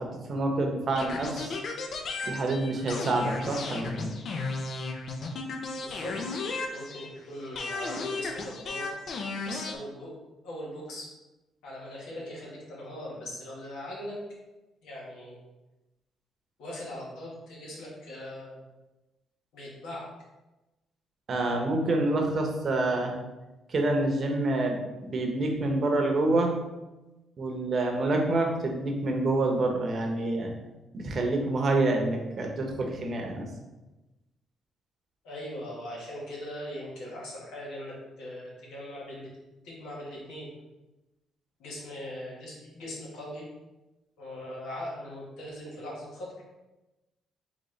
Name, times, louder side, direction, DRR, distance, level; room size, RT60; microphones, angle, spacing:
voice 1, 0.0-1.6 2.2-4.1 21.3-23.1 23.7-26.6 27.4-30.5 30.9-33.5, right 2 dB, 50° right, 1 dB, 0.8 m, -27 dB
sound 1, 1.0-7.2 7.6-9.8, left 3 dB, 60° left, 0.5 m, -34 dB
voice 2, 5.8-6.4 6.7-8.9 9.4-10.1 10.4-11.1 11.6-14.2 14.8-15.3 16.6-18.6 19.5-20.0 35.2-39.3 39.6-40.5 41.6-43.4 44.2-46.3, left 1 dB, 90° left, -5 dB, 1.4 m, -40 dB
3.9 x 3.2 x 3.2 m, 1.1 s
cardioid pair, 90°, 0 cm